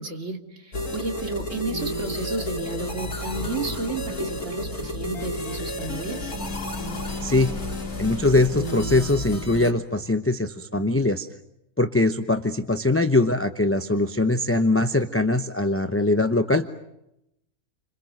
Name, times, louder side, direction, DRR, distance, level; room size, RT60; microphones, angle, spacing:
voice 1, 0.0-6.3, right 3 dB, 50° right, 3 dB, 3.3 m, -32 dB
sound 1, 0.7-9.7, left 1 dB, 75° left, 4.1 m, -31 dB
voice 2, 7.2-7.5 8.0-11.3 11.8-16.7, left 2 dB, 10° left, 7 dB, 0.7 m, -22 dB
30.0 x 26.0 x 6.6 m, 0.85 s
omnidirectional pair, 1.6 m